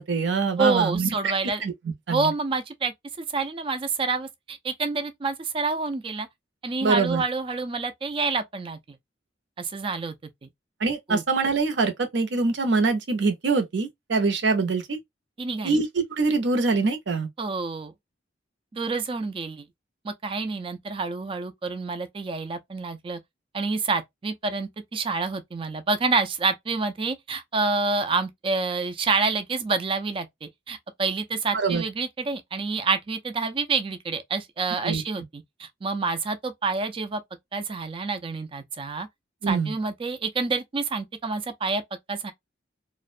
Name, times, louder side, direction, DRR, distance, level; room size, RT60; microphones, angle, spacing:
voice 1, 0.0-1.1 1.6-1.7 2.1-2.3 6.8-7.2 10.8-15.0 15.6-17.3 31.5-31.8 34.8-35.0 39.4-39.7, right 4 dB, 65° right, 0.6 m, -24 dB
voice 2, 0.6-1.6 2.1-6.3 6.6-8.8 9.6-10.2 10.4-10.5 11.1-11.2 15.4-15.8 17.4-17.9 18.7-19.7 20.0-23.2 23.5-37.2 37.5-39.1 39.5-41.8 42.1-42.3, right 4 dB, 30° right, 0.3 m, -28 dB
2.4 x 2.1 x 2.4 m
head